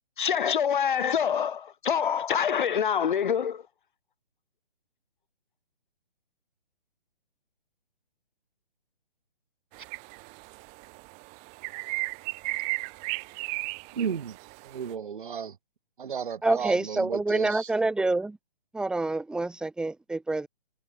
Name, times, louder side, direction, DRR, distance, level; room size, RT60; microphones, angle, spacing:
voice 1, 0.2-3.6, left 8 dB, 55° left, 2.0 m, -26 dB
sound 1, 9.7-14.9, right 35 dB, 25° right, 7.6 m, -36 dB
voice 2, 13.9-14.4 14.6-15.6 16.0-17.7, right 7 dB, 60° right, 6.7 m, -33 dB
voice 3, 16.4-18.4 18.7-20.5, right 2 dB, 5° right, 2.4 m, -27 dB
hypercardioid pair, 150°, 29 cm